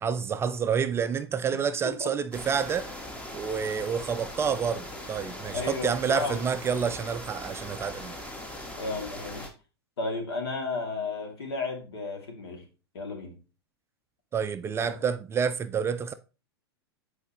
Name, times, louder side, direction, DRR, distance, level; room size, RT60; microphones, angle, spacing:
voice 1, 0.0-2.9 3.3-8.2 14.3-16.1, right 7 dB, 20° right, 0.4 m, -29 dB
voice 2, 1.5-2.1 5.5-6.4 8.7-9.5 10.0-12.6 12.9-13.4, left 3 dB, 70° left, 2.5 m, -33 dB
sound 1, 2.3-9.5, left 1 dB, 10° left, 1.3 m, -40 dB
8.3 x 4.7 x 3.0 m
figure-of-eight pair, 100°, 14 cm